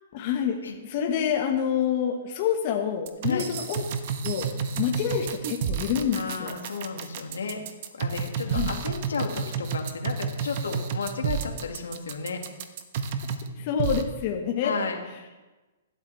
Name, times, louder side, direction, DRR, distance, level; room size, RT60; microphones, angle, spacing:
voice 1, 0.1-0.6 0.8-3.8 4.2-4.5 4.8-6.5 8.5-8.7 13.6-14.7, left 8 dB, 45° left, 2 dB, 1.5 m, -27 dB
sound 1, 3.1-13.5 13.8-14.0, right 6 dB, 55° right, 1.2 m, -30 dB
voice 2, 6.1-7.6 7.9-12.4 14.6-15.0, left 5 dB, 80° left, 3 dB, 2.1 m, -33 dB
16.5 x 12.0 x 3.4 m, 1.2 s
hypercardioid pair, 125°, 0 cm